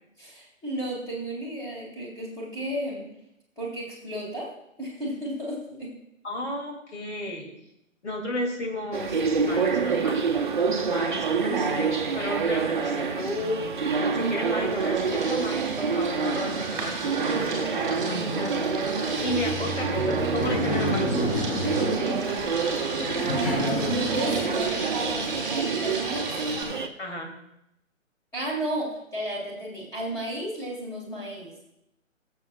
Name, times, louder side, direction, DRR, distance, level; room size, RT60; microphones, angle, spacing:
voice 1, 0.2-3.1 3.6-4.5 4.8-6.0 23.3-26.4 28.3-31.7, right 1 dB, 10° left, -4 dB, 2.1 m, -33 dB
voice 2, 6.2-7.5 8.0-10.2 10.9-13.8 14.1-21.5 27.0-27.4, left 1 dB, 55° left, 1 dB, 3.0 m, -33 dB
sound 1, 8.9-26.9, right 5 dB, 40° right, 0.8 m, -27 dB
sound 2, 14.6-26.6, right 3 dB, 10° right, 1.9 m, -36 dB
Laughter, 19.1-25.4, right 1 dB, 25° left, 2.9 m, -30 dB
18.5 x 7.5 x 2.5 m, 0.84 s
figure-of-eight pair, 140°, 40 cm